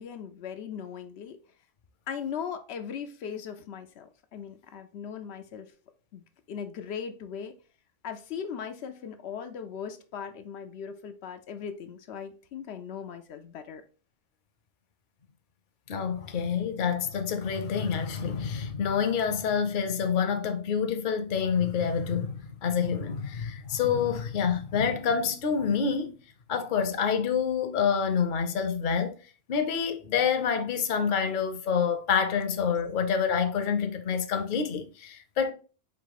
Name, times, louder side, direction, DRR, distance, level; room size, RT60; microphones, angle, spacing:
voice 1, 0.0-1.4 2.1-5.7 6.1-6.2 6.5-7.5 8.0-13.8, left 7 dB, 85° left, 0.9 m, -38 dB
voice 2, 15.9-26.1 26.5-29.2 29.5-35.5, left 6 dB, 55° left, 0.8 m, -27 dB
4.8 x 2.7 x 3.9 m
omnidirectional pair, 1.0 m